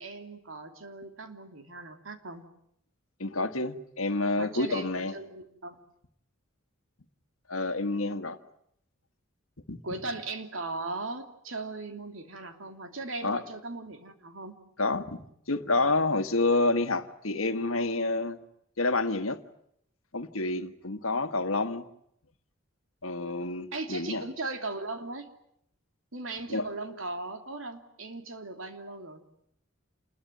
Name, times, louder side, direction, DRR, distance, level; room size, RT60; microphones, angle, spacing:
voice 1, 0.0-2.5 4.4-5.8 9.8-14.6 23.7-25.3 26.1-29.2, right 2 dB, 70° right, 6 dB, 2.9 m, -38 dB
voice 2, 3.2-5.1 7.5-8.4 9.7-9.8 13.2-13.4 14.8-15.2 15.5-18.4 18.8-19.4 20.1-21.8 23.0-24.2 26.5-26.7, left 2 dB, 85° left, 10 dB, 1.6 m, -28 dB
28.0 x 21.0 x 9.2 m, 0.74 s
head